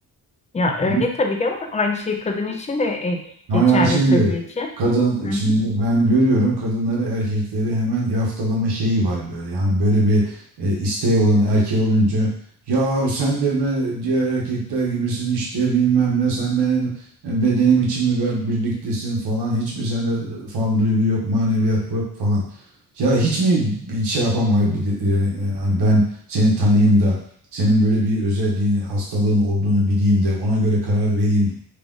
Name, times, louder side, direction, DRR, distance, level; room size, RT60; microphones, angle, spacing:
voice 1, 0.5-3.2 3.5-4.7 5.2-5.5, left 2 dB, 20° left, 3 dB, 0.4 m, -23 dB
voice 2, 3.5-4.3 4.8-12.3 12.7-16.9 17.2-22.4 23.0-26.0 26.3-27.2 27.5-31.6, right 1 dB, 70° right, -4 dB, 1.3 m, -20 dB
3.4 x 2.4 x 3.6 m, 0.63 s
wide cardioid pair, 130°, 41 cm